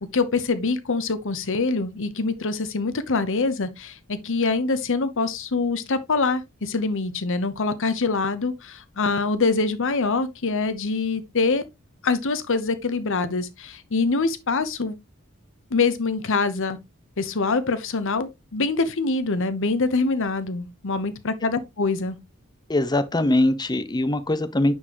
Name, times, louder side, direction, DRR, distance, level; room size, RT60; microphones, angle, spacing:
voice 1, 0.1-11.6 12.0-15.0 15.7-16.8 17.2-22.2, left 3 dB, 65° left, 0.9 m, -24 dB
voice 2, 22.7-24.7, left 1 dB, 20° left, 0.7 m, -22 dB
9.4 x 4.5 x 3.0 m
head